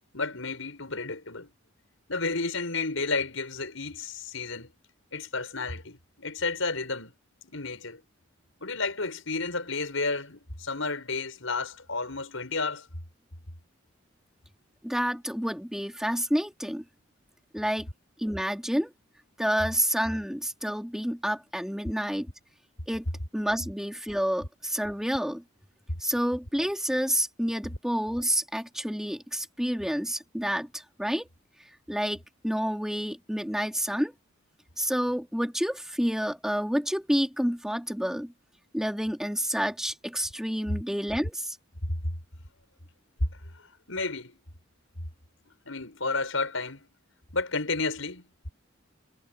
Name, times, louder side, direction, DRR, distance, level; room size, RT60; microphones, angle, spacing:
voice 1, 0.1-1.5 2.1-4.7 5.1-7.2 7.4-8.0 8.6-12.9 41.9-42.0 43.9-44.4 45.6-46.9 47.3-48.3, left 3 dB, 70° left, 6.2 m, -31 dB
voice 2, 14.8-16.8 17.5-17.9 18.2-18.9 19.4-22.3 22.9-23.1 23.3-25.4 26.0-31.3 31.9-34.1 34.8-38.3 38.7-41.6, equal, ahead, 3.0 m, -29 dB
head